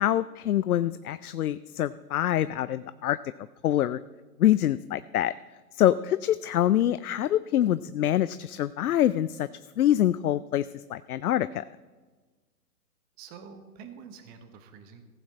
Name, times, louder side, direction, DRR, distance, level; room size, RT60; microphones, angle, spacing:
voice 1, 0.0-3.2 3.6-4.0 4.4-5.3 5.7-9.5 9.8-11.6, left 12 dB, 70° left, 15 dB, 0.5 m, -25 dB
voice 2, 13.2-15.0, right 6 dB, 20° right, 8 dB, 1.0 m, -47 dB
15.0 x 8.8 x 4.3 m, 1.3 s
hypercardioid pair, 130°, 47 cm